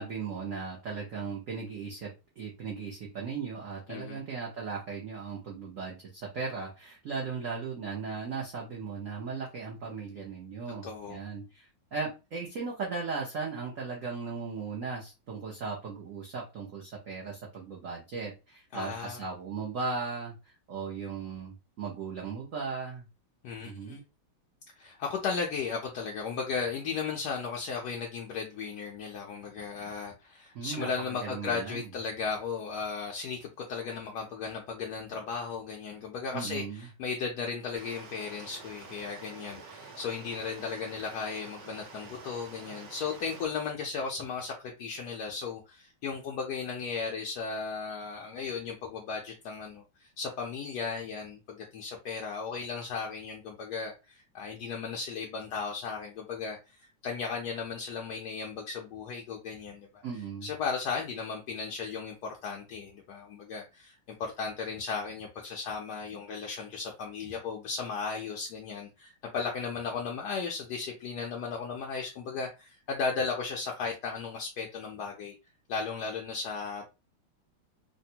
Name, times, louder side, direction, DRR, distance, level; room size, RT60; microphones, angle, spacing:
voice 1, 0.0-23.0 23.6-24.0 30.5-31.9 36.3-36.9 60.0-60.5, right 5 dB, 75° right, 0.7 m, -37 dB
voice 2, 3.9-4.2 10.8-11.2 18.7-19.2 23.4-24.0 24.8-44.5 44.8-56.8 57.0-60.0 60.4-63.9 64.2-75.3 75.7-76.9, left 5 dB, 75° left, 0.9 m, -36 dB
Stream, 37.8-43.5, right 4 dB, 60° right, 1.1 m, -48 dB
3.4 x 2.2 x 2.8 m
omnidirectional pair, 2.3 m